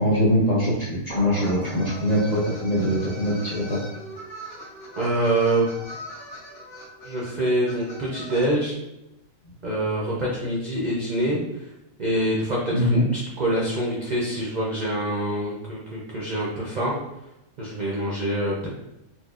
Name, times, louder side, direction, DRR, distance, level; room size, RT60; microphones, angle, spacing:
voice 1, 0.0-3.8 9.5-9.6 12.7-13.0, equal, 45° left, -7 dB, 0.6 m, -22 dB
sound 1, 1.1-2.8, equal, 5° left, 0.7 m, -38 dB
sound 2, 1.4-8.5, equal, 60° left, 1.4 m, -41 dB
voice 2, 5.0-5.7 7.0-8.7 9.6-11.7 12.0-16.9 17.6-18.7, right 1 dB, 55° right, -5 dB, 0.5 m, -25 dB
4.2 x 2.5 x 2.4 m, 0.91 s
omnidirectional pair, 1.4 m